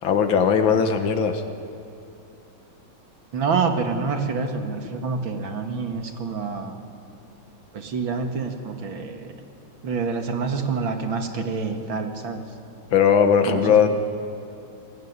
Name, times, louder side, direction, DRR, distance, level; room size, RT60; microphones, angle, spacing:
voice 1, 0.0-1.4 12.9-13.9, left 7 dB, 70° left, 6 dB, 2.2 m, -18 dB
voice 2, 3.3-6.8 7.7-9.3 9.8-12.4 13.5-13.9, right 4 dB, 65° right, 4 dB, 2.7 m, -27 dB
28.5 x 19.5 x 9.8 m, 2.7 s
omnidirectional pair, 2.3 m